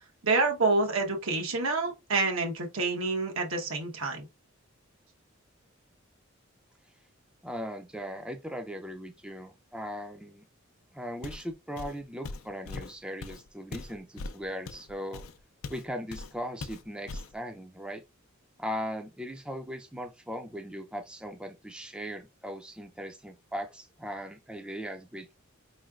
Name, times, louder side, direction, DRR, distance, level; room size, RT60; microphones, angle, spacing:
voice 1, 0.2-4.3, right 3 dB, 85° right, 1.2 m, -28 dB
voice 2, 7.4-10.4 10.9-15.2 15.7-18.0 18.6-25.4, equal, 5° right, 0.4 m, -38 dB
Walk footsteps, 11.2-11.5 11.8-15.9 16.1-16.3 16.6-17.3, left 3 dB, 90° left, 0.5 m, -40 dB
4.7 x 3.1 x 2.4 m
head